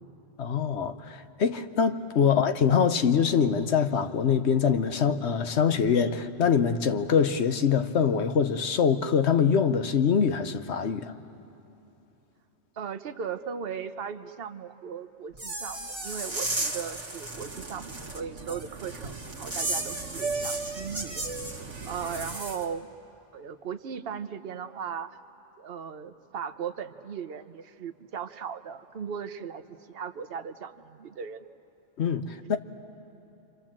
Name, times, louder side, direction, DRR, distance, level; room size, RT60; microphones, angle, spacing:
voice 1, 0.4-11.1 32.0-32.6, left 7 dB, 70° left, 1.1 m, -24 dB
voice 2, 12.8-21.2 21.5-22.9 23.3-25.2 25.6-29.6 29.9-31.4, right 7 dB, 55° right, 1.0 m, -37 dB
sound 1, 15.3-22.6, right 2 dB, 25° right, 1.7 m, -35 dB
Fixed-wing aircraft airplane, 17.3-22.4, right 4 dB, 85° right, 1.3 m, -39 dB
29.5 x 25.0 x 7.5 m
omnidirectional pair, 1.2 m